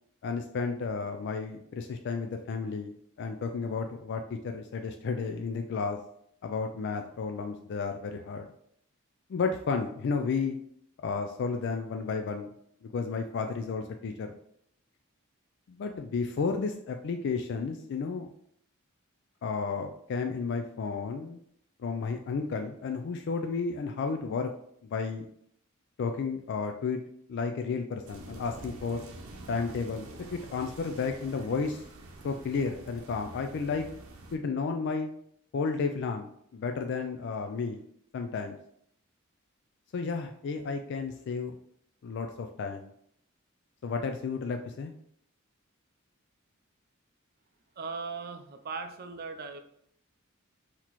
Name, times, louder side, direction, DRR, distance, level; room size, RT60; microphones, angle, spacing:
voice 1, 0.2-6.0 6.4-8.5 9.3-10.6 11.0-12.5 12.8-14.4 15.7-18.3 19.4-21.4 21.8-24.5 24.9-25.3 26.0-27.0 27.3-29.1 29.5-31.9 32.2-33.9 34.3-35.1 35.5-37.8 38.1-38.6 39.9-41.6 42.0-42.9 43.8-44.9, left 4 dB, 55° left, 5 dB, 0.3 m, -32 dB
sound 1, 28.1-34.4, right 2 dB, 90° right, 0.7 m, -47 dB
voice 2, 47.8-49.6, right 4 dB, 45° right, 8 dB, 0.5 m, -38 dB
5.9 x 2.9 x 3.0 m, 0.69 s
head